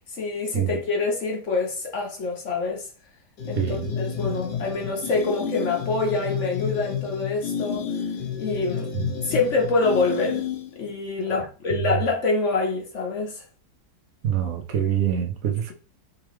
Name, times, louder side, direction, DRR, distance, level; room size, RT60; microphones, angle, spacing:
voice 1, 0.1-2.8 3.5-7.9 8.4-8.9 9.2-10.4 10.7-13.4, left 3 dB, 50° left, 0.9 m, -26 dB
sound 1, 3.4-10.9, left 7 dB, 70° left, 1.4 m, -31 dB
voice 2, 3.6-3.9 8.9-9.1 11.3-11.8 14.2-15.7, right 10 dB, 65° right, 0.9 m, -26 dB
3.9 x 3.3 x 3.1 m
omnidirectional pair, 2.0 m